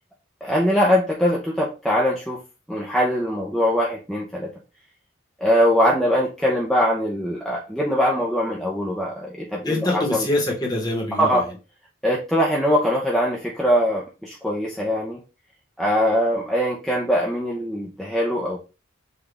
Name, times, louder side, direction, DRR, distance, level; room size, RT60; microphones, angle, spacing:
voice 1, 0.4-2.4 2.7-4.5 5.4-10.2 11.2-11.4 12.0-15.2 15.8-18.6, equal, ahead, -4 dB, 0.7 m, -22 dB
voice 2, 9.6-11.6, left 1 dB, 20° left, -1 dB, 1.2 m, -25 dB
6.0 x 2.5 x 3.4 m, 0.31 s
head